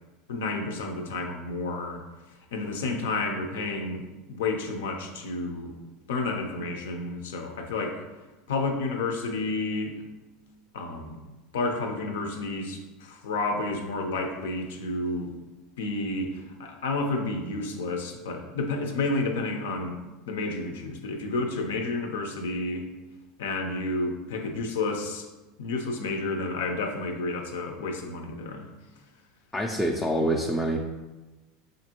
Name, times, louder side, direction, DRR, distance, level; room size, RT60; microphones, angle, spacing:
voice 1, 0.3-2.0 2.5-5.8 6.1-8.0 8.5-10.0 10.7-11.2 11.5-15.3 15.8-20.0 20.3-22.9 23.4-25.3 25.6-28.6, left 3 dB, 90° left, 4 dB, 0.5 m, -30 dB
voice 2, 29.5-30.8, right 1 dB, 5° left, -1 dB, 0.3 m, -26 dB
5.1 x 2.6 x 2.9 m, 1.1 s
supercardioid pair, 120°, 0 cm